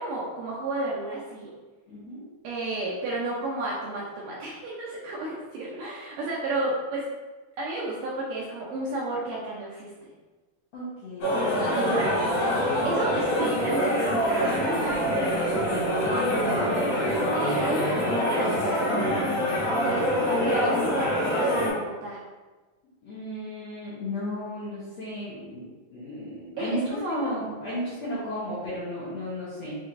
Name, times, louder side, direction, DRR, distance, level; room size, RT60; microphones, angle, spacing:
voice 1, 0.0-1.5 2.4-7.1 7.6-10.1 11.5-17.1 17.3-18.8 19.8-22.2 26.6-27.4, right 2 dB, 85° right, -5 dB, 1.9 m, -32 dB
voice 2, 1.9-2.2 10.7-12.1 23.0-29.8, left 1 dB, 80° left, -9 dB, 1.5 m, -34 dB
sound 1, 11.2-21.7, equal, 60° left, 1.9 m, -25 dB
5.8 x 2.9 x 2.5 m, 1.3 s
omnidirectional pair, 4.3 m